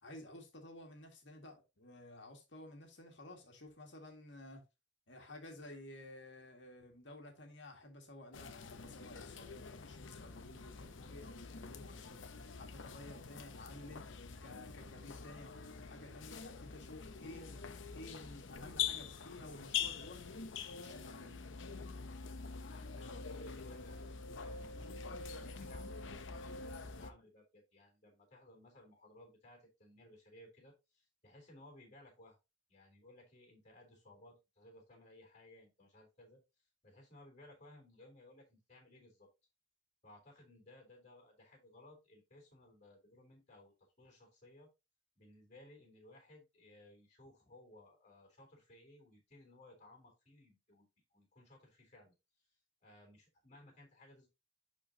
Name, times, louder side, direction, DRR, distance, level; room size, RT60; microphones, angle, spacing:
voice 1, 0.0-4.6 5.1-20.4 20.7-21.3, left 1 dB, 70° left, 2.0 m, -53 dB
sound 1, 8.3-27.1, left 6 dB, 85° left, 0.8 m, -45 dB
voice 2, 22.7-32.4 32.7-36.4 36.8-39.3 40.0-44.7 45.2-52.1 52.8-54.3, left 1 dB, 40° left, 3.5 m, -60 dB
10.5 x 4.5 x 2.8 m
head